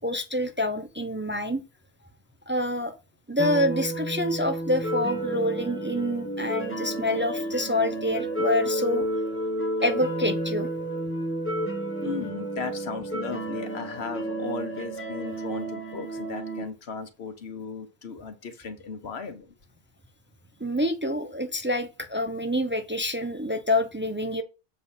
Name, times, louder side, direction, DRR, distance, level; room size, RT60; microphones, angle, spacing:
voice 1, 0.0-1.6 2.5-3.0 3.3-9.1 9.8-10.7 20.6-24.4, left 1 dB, 15° right, 0.7 m, -27 dB
sound 1, 3.4-16.6, right 1 dB, 10° left, 1.4 m, -31 dB
voice 2, 12.0-19.5, left 5 dB, 85° left, 1.4 m, -36 dB
7.6 x 4.2 x 5.6 m
omnidirectional pair, 1.0 m